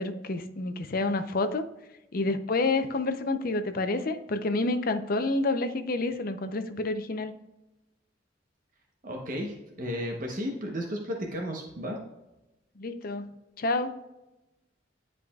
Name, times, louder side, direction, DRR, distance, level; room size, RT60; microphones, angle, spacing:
voice 1, 0.0-1.7 2.1-7.3 12.8-13.3 13.6-13.9, left 2 dB, 50° left, 9 dB, 0.6 m, -28 dB
voice 2, 9.0-12.0, equal, 50° right, 1 dB, 1.0 m, -33 dB
9.9 x 4.9 x 2.3 m, 0.96 s
head